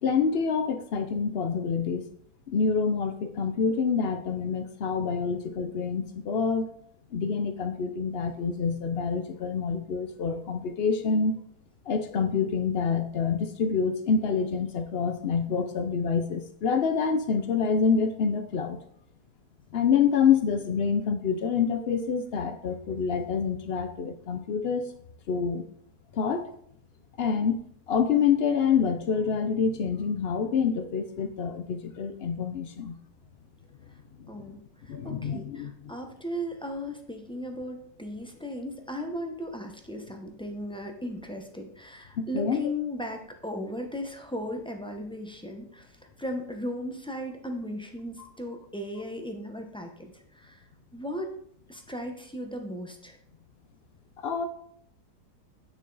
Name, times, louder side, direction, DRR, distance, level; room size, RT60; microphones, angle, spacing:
voice 1, 0.0-2.1 2.5-6.7 7.1-11.4 11.9-18.8 19.7-24.9 25.3-25.6 26.1-26.5 27.2-33.0 34.2-34.6 34.9-35.9 42.2-42.6 54.2-54.5, left 6 dB, 85° left, 9 dB, 0.5 m, -27 dB
voice 2, 34.3-50.6 50.9-51.3 51.7-53.2, left 1 dB, 5° left, 3 dB, 0.5 m, -36 dB
9.1 x 6.1 x 4.0 m, 0.66 s
omnidirectional pair, 1.9 m